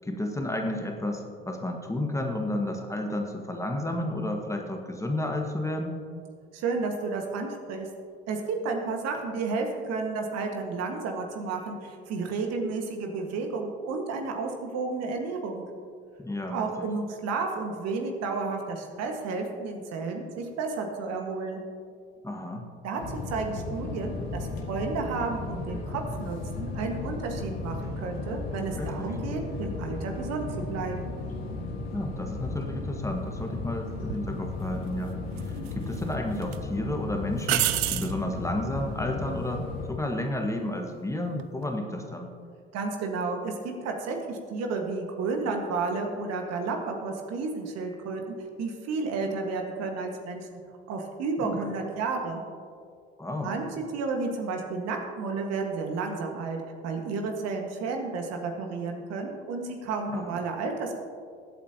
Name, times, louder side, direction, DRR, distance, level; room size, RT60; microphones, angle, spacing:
voice 1, 0.0-6.0 16.2-16.9 22.2-22.6 28.7-29.1 31.9-35.1 35.5-42.3 51.4-51.7 53.2-53.5 60.1-60.4, left 1 dB, 10° left, 2 dB, 1.6 m, -32 dB
voice 2, 6.5-7.9 8.3-15.6 16.5-21.6 22.8-31.1 42.7-50.6 50.9-52.4 53.4-56.6 56.8-61.0, right 4 dB, 55° right, 3 dB, 1.6 m, -32 dB
sound 1, 23.0-39.9, left 3 dB, 75° left, 1.8 m, -35 dB
sound 2, 34.1-34.3 35.4-36.0 36.4-36.6 37.4-38.2 41.3-41.6, right 14 dB, 75° right, 0.5 m, -27 dB
21.5 x 8.4 x 2.9 m, 2.2 s
figure-of-eight pair, 60°, 31 cm